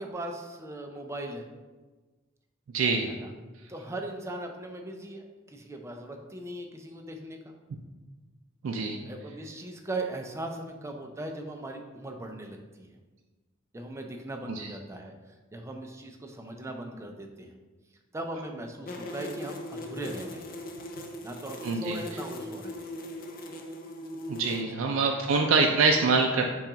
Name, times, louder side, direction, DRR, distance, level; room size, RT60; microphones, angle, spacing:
voice 1, 0.0-1.4 3.1-3.3 3.7-7.5 9.0-13.0 13.7-15.1 15.5-17.6 18.1-20.4 21.2-22.8 25.4-25.6, right 1 dB, 15° right, 3 dB, 0.4 m, -39 dB
voice 2, 2.7-3.1 8.6-9.0 14.5-14.7 21.6-22.0 24.3-26.4, right 4 dB, 85° right, 2 dB, 0.4 m, -25 dB
sound 1, 18.9-24.6, left 1 dB, 45° left, 0.5 m, -39 dB
5.7 x 2.3 x 3.8 m, 1.3 s
head